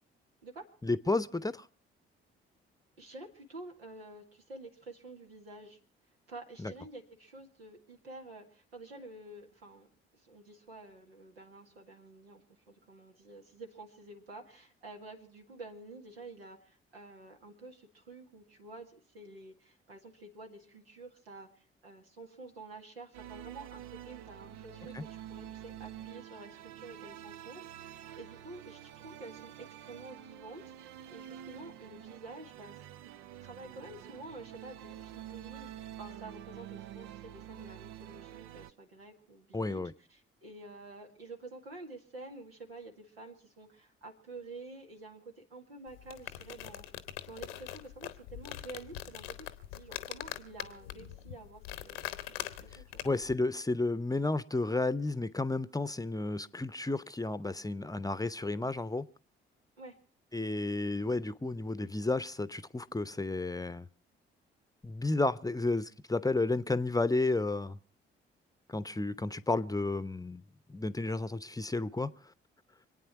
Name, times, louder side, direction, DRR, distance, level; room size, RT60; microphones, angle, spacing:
voice 1, 0.8-1.7 6.6-6.7 24.9-25.0 39.5-39.9 53.0-59.1 60.3-63.9 64.8-67.8 68.7-70.4 70.7-72.1, left 2 dB, 10° left, 0.8 m, -32 dB
voice 2, 3.0-5.8 6.3-9.9 10.1-32.8 33.4-39.8 40.1-46.8 47.3-49.5 49.7-52.1 52.6-53.0 59.8-60.0, right 2 dB, 85° right, 2.0 m, -49 dB
sound 1, 23.1-38.7, right 11 dB, 65° right, 0.7 m, -48 dB
sound 2, 45.9-53.4, left 13 dB, 80° left, 1.0 m, -43 dB
26.0 x 9.1 x 5.8 m
figure-of-eight pair, 45°, 29 cm